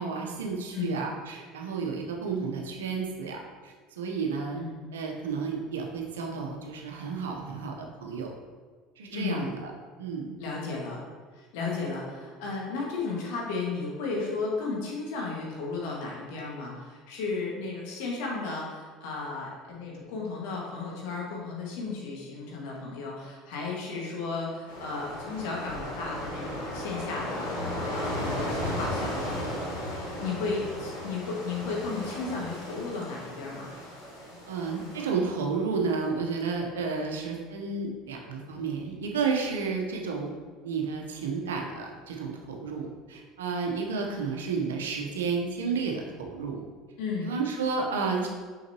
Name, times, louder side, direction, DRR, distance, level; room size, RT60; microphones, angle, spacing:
voice 1, 0.0-4.6 4.9-8.3 9.0-9.7 10.0-10.4 30.6-30.7 34.5-40.3 40.6-46.6 47.2-48.3, right 5 dB, 85° right, 1 dB, 0.9 m, -31 dB
voice 2, 4.5-4.8 9.1-9.5 10.4-11.0 11.4-29.4 30.2-33.7 47.0-47.3, left 4 dB, 70° left, -3 dB, 1.8 m, -34 dB
sound 1, 24.7-35.0, left 1 dB, 90° left, 1.8 m, -35 dB
6.5 x 5.8 x 3.0 m, 1.5 s
hypercardioid pair, 75°, 0 cm